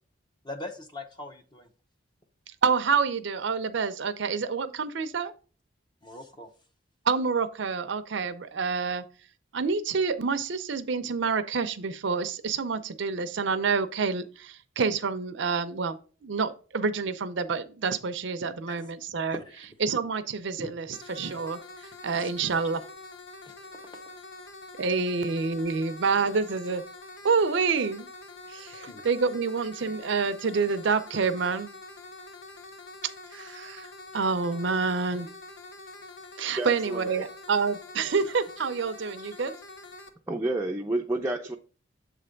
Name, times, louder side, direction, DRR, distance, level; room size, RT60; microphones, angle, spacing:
voice 1, 0.4-1.7 6.0-6.5 18.7-18.9 19.4-19.7 20.6-20.7 22.1-22.3 23.5-23.6 28.9-29.0, left 2 dB, 20° left, 0.7 m, -41 dB
voice 2, 2.6-5.3 7.1-9.0 9.5-21.6 22.0-22.8 24.8-26.8 27.2-28.1 28.5-31.7 33.3-33.9 34.1-35.3 36.4-39.5, right 5 dB, 65° right, 0.5 m, -28 dB
sound 1, 20.9-40.1, left 2 dB, 65° left, 0.9 m, -46 dB
voice 3, 36.5-37.2 40.3-41.6, right 2 dB, 10° right, 0.4 m, -30 dB
7.5 x 3.3 x 5.1 m
head